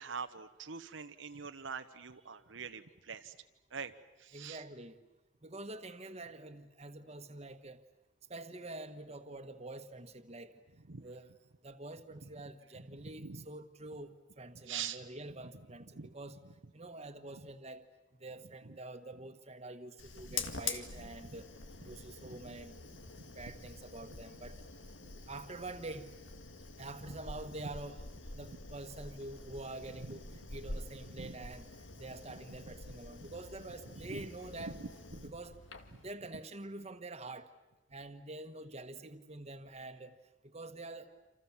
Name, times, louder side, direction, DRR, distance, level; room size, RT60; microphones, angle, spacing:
voice 1, 0.0-3.4 3.7-3.9 4.2-4.6 10.9-11.1 12.9-13.4 14.7-15.0 15.9-16.1 18.6-18.7 22.2-22.4 23.2-23.3 27.0-27.1 30.0-30.2 31.1-31.3 32.5-32.6 33.2-33.3 34.0-34.3 34.8-35.3, right 6 dB, 80° right, 7 dB, 1.1 m, -44 dB
voice 2, 4.3-5.0 5.4-7.8 8.3-10.5 11.0-11.3 11.6-16.4 16.7-17.8 18.2-21.5 21.8-22.9 23.3-24.6 25.3-26.1 26.8-28.0 28.3-31.7 31.9-34.8 35.2-35.6 36.0-37.5 37.9-40.1 40.4-41.1, right 2 dB, 35° right, 7 dB, 1.5 m, -46 dB
Fire, 20.0-36.1, left 4 dB, 85° left, 1.9 m, -46 dB
28.0 x 27.5 x 7.3 m, 0.99 s
head